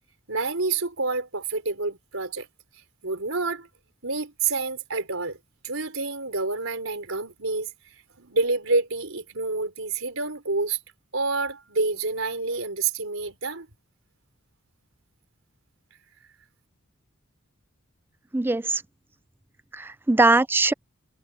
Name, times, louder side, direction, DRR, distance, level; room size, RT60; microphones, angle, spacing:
voice 1, 0.3-2.5 3.0-3.7 4.0-5.4 5.6-7.7 8.2-10.8 11.1-13.7, right 3 dB, 70° right, 4.3 m, -28 dB
voice 2, 18.3-18.8 19.7-20.7, right 2 dB, 10° right, 0.3 m, -21 dB
head